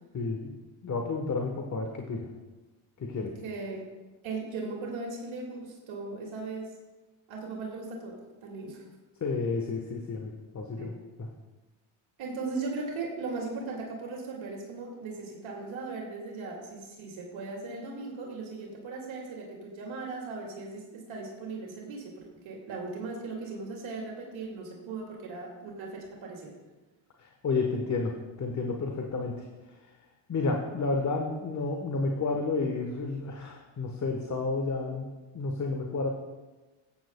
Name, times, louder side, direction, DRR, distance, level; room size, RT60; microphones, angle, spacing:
voice 1, 0.1-0.5 0.8-2.3 3.0-3.3 9.2-10.9 11.2-11.3 27.2-28.1 28.4-29.4 30.3-35.1 35.3-36.1, left 3 dB, 35° left, 2 dB, 1.2 m, -31 dB
voice 2, 3.1-3.8 4.2-6.8 7.3-8.8 10.8-10.9 12.2-26.5, right 3 dB, 65° right, -1 dB, 2.4 m, -38 dB
14.0 x 9.1 x 2.3 m, 1.2 s
supercardioid pair, 75°, 50 cm